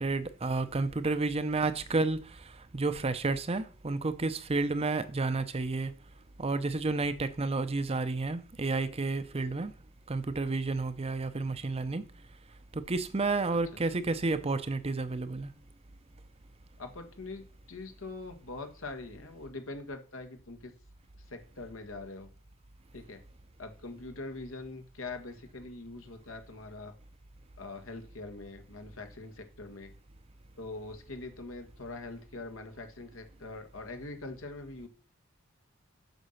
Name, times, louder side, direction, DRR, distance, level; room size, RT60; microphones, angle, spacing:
voice 1, 0.0-2.4 2.7-5.9 6.4-9.7 10.1-12.0 12.7-15.5, right 3 dB, 30° right, 0.6 m, -31 dB
voice 2, 16.8-20.7 21.3-22.3 22.9-23.2 23.6-26.9 27.6-29.9 30.6-34.9, left 2 dB, 80° left, 1.7 m, -43 dB
8.0 x 6.6 x 5.7 m
head